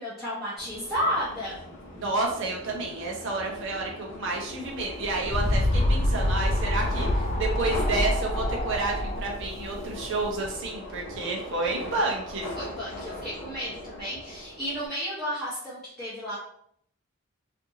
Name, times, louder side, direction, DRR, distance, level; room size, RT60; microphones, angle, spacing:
voice 1, 0.0-1.6 12.5-16.4, equal, ahead, -11 dB, 0.8 m, -32 dB
Subway metro underground, 0.6-14.9, left 1 dB, 55° left, 0.7 m, -40 dB
voice 2, 2.0-12.5, right 2 dB, 55° right, -1 dB, 0.7 m, -30 dB
sound 1, 4.8-10.4, left 1 dB, 35° left, 0.3 m, -26 dB
2.6 x 2.5 x 2.7 m, 0.68 s
head